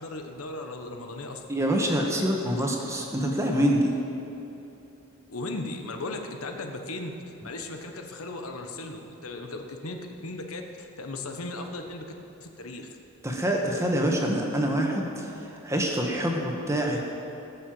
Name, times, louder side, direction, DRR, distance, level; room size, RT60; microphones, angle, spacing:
voice 1, 0.0-1.4 5.3-12.1 12.4-12.9, left 2 dB, 80° left, 4 dB, 1.2 m, -37 dB
voice 2, 1.5-3.9 13.2-17.0, equal, 15° right, 0 dB, 1.5 m, -26 dB
19.0 x 6.9 x 7.7 m, 2.9 s
head